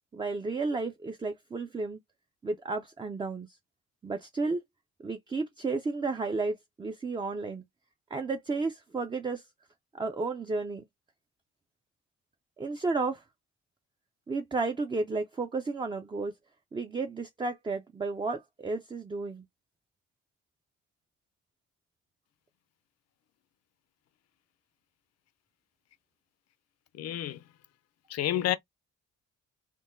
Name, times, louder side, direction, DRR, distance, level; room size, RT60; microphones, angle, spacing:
voice 1, 0.1-2.0 2.4-3.5 4.0-4.6 5.0-7.6 8.1-9.4 9.9-10.8 12.6-13.2 14.3-16.3 16.7-19.4, right 3 dB, 15° right, 0.4 m, -32 dB
voice 2, 26.9-27.4 28.1-28.6, left 12 dB, 55° left, 0.5 m, -29 dB
3.6 x 2.1 x 2.5 m
cardioid pair, 90°, 30 cm